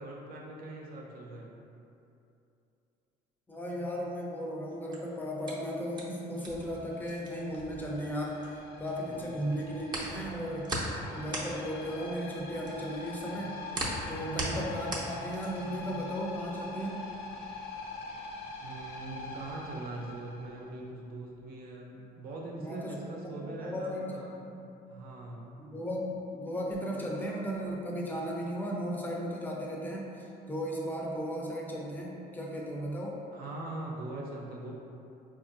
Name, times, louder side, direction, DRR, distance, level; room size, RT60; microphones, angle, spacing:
voice 1, 0.0-1.6 9.0-9.6 14.1-14.8 18.6-24.3 24.9-25.6 27.8-27.9 33.3-34.7, right 2 dB, 65° right, -2 dB, 0.7 m, -42 dB
voice 2, 3.5-10.7 11.1-13.6 14.1-17.1 22.6-23.0 23.2-24.1 24.4-24.5 25.6-33.2, equal, 10° left, -3 dB, 0.6 m, -36 dB
sound 1, 4.7-8.9 9.2-15.8, right 2 dB, 25° right, 0.7 m, -38 dB
sound 2, 6.4-21.0, left 3 dB, 65° left, 0.6 m, -44 dB
4.2 x 2.5 x 2.6 m, 2.7 s
cardioid pair, 110°, 17 cm